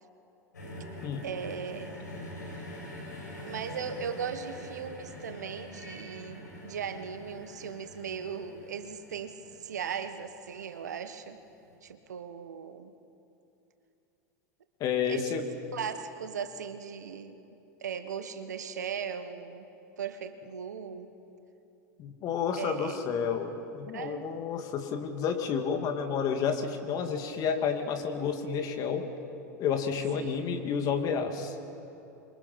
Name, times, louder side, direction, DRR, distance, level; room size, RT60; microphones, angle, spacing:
sound 1, 0.5-10.7 11.6-11.7, left 1 dB, 85° left, 6.8 m, -45 dB
voice 1, 1.2-2.0 3.5-11.4 11.8-12.9 15.0-15.2 15.7-17.4 17.8-19.7 20.0-21.1 22.6-23.0 23.9-24.2 30.1-30.4, right 7 dB, 75° right, 9 dB, 1.4 m, -38 dB
voice 2, 14.8-15.4 22.0-29.1 29.6-31.6, left 6 dB, 45° left, 5 dB, 2.8 m, -30 dB
27.5 x 24.0 x 6.0 m, 2.9 s
figure-of-eight pair, 85°, 9 cm